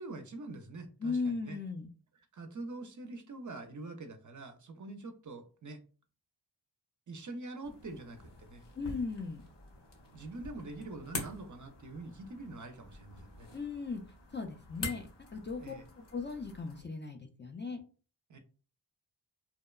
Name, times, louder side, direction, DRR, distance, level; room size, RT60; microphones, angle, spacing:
voice 1, 0.0-1.6 2.3-5.8 7.1-8.6 10.1-13.5 15.6-15.8 18.3-18.4, right 2 dB, 45° right, 7 dB, 0.5 m, -45 dB
voice 2, 1.0-1.9 8.7-9.4 13.5-14.0 14.3-17.8, left 4 dB, 25° left, 4 dB, 0.3 m, -37 dB
sound 1, 7.6-16.8, left 3 dB, 65° left, 0.9 m, -46 dB
2.8 x 2.1 x 2.2 m, 0.36 s
cardioid pair, 65°, 46 cm